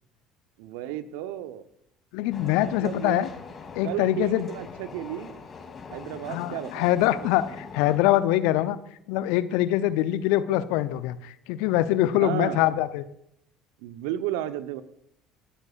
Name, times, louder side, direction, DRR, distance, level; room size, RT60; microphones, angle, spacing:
voice 1, 0.6-1.6 2.6-3.3 3.8-5.3 5.9-7.3 12.1-12.7 13.8-14.8, right 12 dB, 70° right, 12 dB, 0.9 m, -33 dB
voice 2, 2.1-3.3 3.7-4.5 6.3-8.8 9.1-13.0, left 14 dB, 65° left, 14 dB, 0.7 m, -24 dB
sound 1, 2.3-8.0, left 5 dB, 35° left, 3.0 m, -43 dB
28.5 x 12.5 x 2.5 m, 0.76 s
figure-of-eight pair, 60°, 0 cm